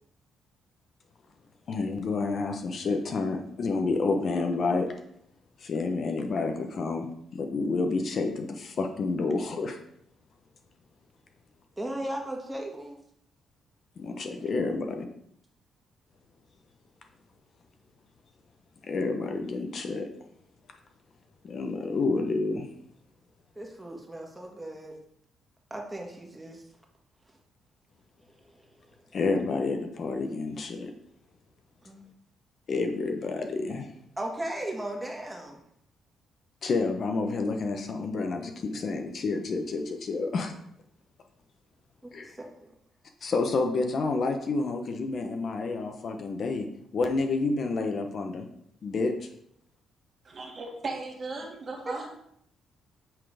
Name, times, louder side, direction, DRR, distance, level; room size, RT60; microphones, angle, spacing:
voice 1, 1.7-4.9 5.6-9.8 14.0-15.1 18.8-20.1 21.4-22.7 29.1-30.9 32.7-33.9 36.6-40.5 42.1-42.3 43.2-46.7 46.9-48.5 48.8-49.3, left 3 dB, 50° left, 0.9 m, -29 dB
voice 2, 11.8-13.0 14.5-14.7 23.5-25.0 25.7-26.6 31.8-32.0 34.2-35.6 42.0-42.7 51.9-52.1, right 1 dB, 10° right, 1.7 m, -36 dB
voice 3, 50.3-52.1, right 3 dB, 45° right, 1.7 m, -36 dB
7.4 x 3.8 x 5.0 m
cardioid pair, 90°, 0 cm